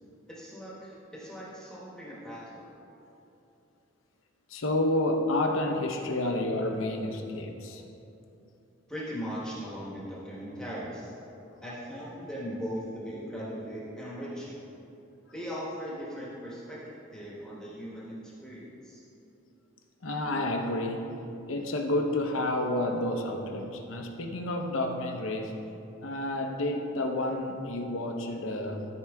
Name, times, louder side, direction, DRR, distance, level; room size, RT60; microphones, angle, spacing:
voice 1, 0.3-2.7 8.9-11.1 11.6-14.6 15.3-16.8 17.1-19.0, equal, 5° left, -7 dB, 1.2 m, -39 dB
voice 2, 4.5-7.8 20.0-21.1 21.5-25.6 26.0-28.9, left 1 dB, 75° left, 3 dB, 0.8 m, -30 dB
13.5 x 4.7 x 3.5 m, 2.8 s
head